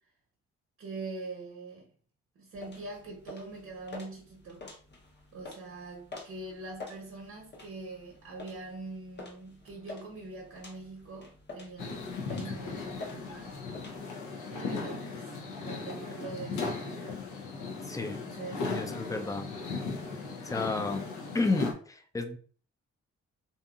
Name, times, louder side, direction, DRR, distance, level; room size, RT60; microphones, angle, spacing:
voice 1, 0.8-1.9 2.4-4.7 5.3-13.8 14.5-15.3 15.6-17.2 18.2-18.8, right 3 dB, 55° right, 0.9 m, -43 dB
sound 1, 2.5-14.0, left 3 dB, 35° left, 0.8 m, -48 dB
sound 2, 11.8-21.7, left 4 dB, 70° left, 0.7 m, -37 dB
voice 2, 17.8-18.2 18.6-19.5 20.4-21.0 21.3-22.4, left 3 dB, 10° left, 0.4 m, -31 dB
2.6 x 2.6 x 2.3 m
supercardioid pair, 50°, 31 cm